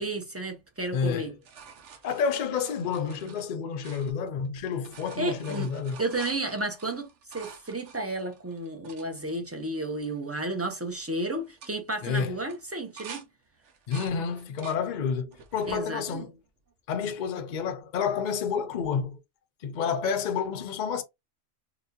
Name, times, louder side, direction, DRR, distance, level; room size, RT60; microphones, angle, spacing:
voice 1, 0.0-1.3 5.2-5.7 6.0-7.1 7.3-13.3 15.7-16.2, right 2 dB, 20° right, 0.4 m, -32 dB
sound 1, 0.8-4.5 4.7-9.1 9.7-9.8 10.0-10.4 10.7-11.0 11.4-13.3 13.6-14.8 15.3-15.8 16.4-17.2 18.8-18.9, right 6 dB, 70° right, 1.0 m, -48 dB
voice 2, 0.9-1.3 2.0-6.0 12.0-12.4 13.9-16.3 16.9-19.2 19.6-21.0, left 6 dB, 50° left, 0.6 m, -29 dB
3.9 x 2.2 x 2.7 m
omnidirectional pair, 1.3 m